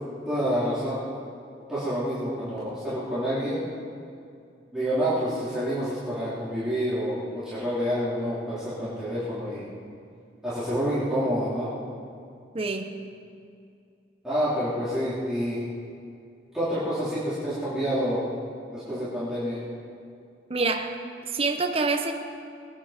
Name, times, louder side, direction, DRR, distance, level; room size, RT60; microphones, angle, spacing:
voice 1, 0.3-1.0 1.7-3.6 4.7-9.7 10.4-11.7 14.2-15.6 16.5-18.2 18.7-19.6, equal, 5° right, -13 dB, 3.6 m, -28 dB
voice 2, 12.5-12.9 20.5-21.0 21.3-22.1, right 3 dB, 35° right, 4 dB, 0.9 m, -26 dB
22.0 x 9.6 x 5.2 m, 2.4 s
head